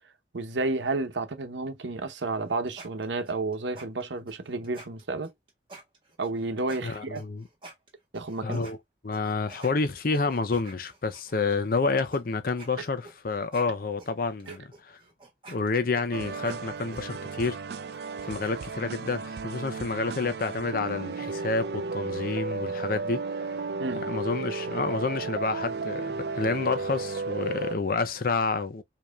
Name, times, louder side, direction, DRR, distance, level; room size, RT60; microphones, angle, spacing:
voice 1, 0.3-5.3 6.2-7.2 8.1-8.6 14.5-14.6 23.8-24.0, right 3 dB, 85° right, 0.9 m, -31 dB
sound 1, 2.3-8.7 9.1-11.6 12.1-12.2 12.5-18.5, right 2 dB, 30° right, 1.5 m, -50 dB
voice 2, 6.8-7.4 8.4-8.8 9.0-15.0 15.5-17.6 17.9-23.2 24.1-28.8, left 4 dB, 50° left, 0.6 m, -29 dB
sound 2, 16.1-27.8, right 4 dB, 60° right, 0.4 m, -34 dB
5.1 x 2.8 x 2.3 m
head